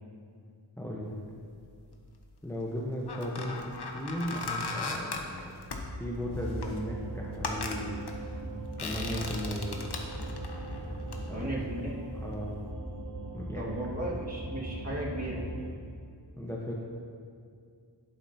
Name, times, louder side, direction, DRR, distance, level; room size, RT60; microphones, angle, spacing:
voice 1, 0.8-1.2 2.4-5.5 6.0-8.0 8.8-9.7 11.3-11.5 12.2-12.6 13.3-13.7 16.4-16.7, equal, 5° left, -3 dB, 1.1 m, -36 dB
sound 1, 1.6-2.2 2.8-12.2 12.5-12.7, left 3 dB, 60° left, 1.0 m, -39 dB
sound 2, 6.2-15.7, right 1 dB, 90° right, 2.0 m, -39 dB
voice 2, 11.3-12.0 13.5-15.4, right 1 dB, 35° right, -5 dB, 2.2 m, -35 dB
11.5 x 8.6 x 2.9 m, 2.3 s
wide cardioid pair, 60°, 45 cm